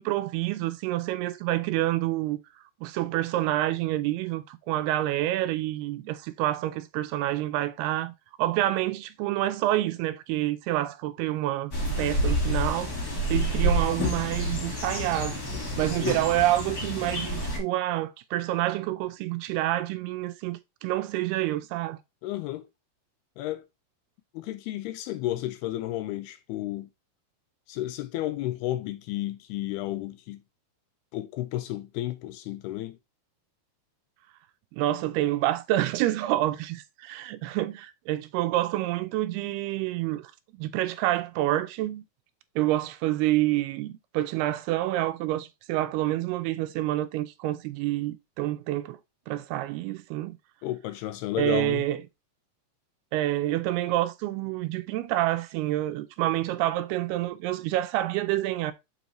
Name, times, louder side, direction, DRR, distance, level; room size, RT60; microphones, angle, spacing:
voice 1, 0.0-2.4 2.8-8.1 8.4-11.7 12.0-12.9 13.3-15.4 15.8-22.0 34.7-40.3 40.6-42.0 42.6-49.0 49.3-50.4 51.4-52.0 53.1-58.7, right 15 dB, 80° right, 2.5 m, -28 dB
sound 1, 11.7-17.6, equal, 45° left, 1.1 m, -28 dB
voice 2, 15.9-16.2 22.2-22.6 23.4-23.6 24.3-26.9 27.7-30.4 31.1-33.0 50.6-51.8, left 14 dB, 80° left, 2.6 m, -32 dB
7.0 x 5.4 x 3.0 m
omnidirectional pair, 4.8 m